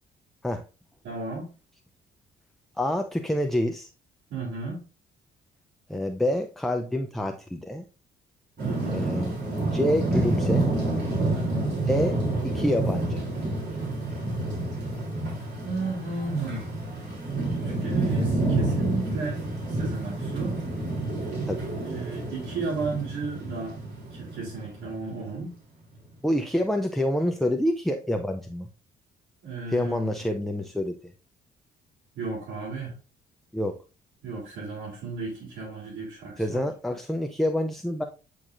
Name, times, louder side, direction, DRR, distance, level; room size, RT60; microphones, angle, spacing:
voice 1, 1.0-1.5 4.3-4.8 8.6-9.2 11.2-11.7 15.6-16.7 17.6-19.4 19.7-20.6 21.8-23.8 24.1-25.5 29.4-30.2 32.1-32.9 34.2-36.6, right 3 dB, 80° right, -6 dB, 3.1 m, -34 dB
voice 2, 2.8-3.9 5.9-7.8 8.9-9.3 9.7-10.7 11.6-12.2 12.4-13.2 21.5-21.7 26.2-28.7 29.7-31.0 33.5-33.8 36.4-38.0, left 1 dB, ahead, 5 dB, 0.6 m, -27 dB
sound 1, 8.6-25.4, right 2 dB, 55° right, 3.4 m, -29 dB
8.6 x 4.7 x 2.6 m, 0.33 s
cardioid pair, 90°, 20 cm